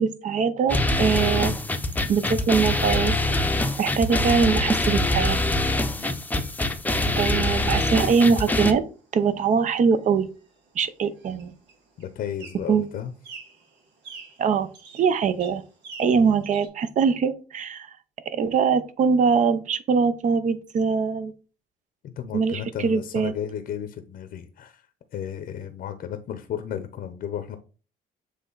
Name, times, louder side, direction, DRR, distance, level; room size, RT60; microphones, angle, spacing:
voice 1, 0.0-1.6 2.1-3.2 3.8-5.4 7.2-8.8 9.1-10.3 10.7-11.5 12.7-12.9 14.4-14.7 14.9-15.6 16.0-17.9 18.3-21.3 22.3-23.3, right 6 dB, 45° right, 13 dB, 0.8 m, -22 dB
sound 1, 0.7-8.7, left 2 dB, 10° left, 0.7 m, -24 dB
sound 2, 8.8-16.7, right 5 dB, 85° right, 1.9 m, -49 dB
voice 2, 12.0-13.1 16.1-16.4 22.0-27.6, left 9 dB, 60° left, 8 dB, 0.7 m, -34 dB
7.6 x 3.3 x 3.9 m, 0.36 s
cardioid pair, 110°, 17 cm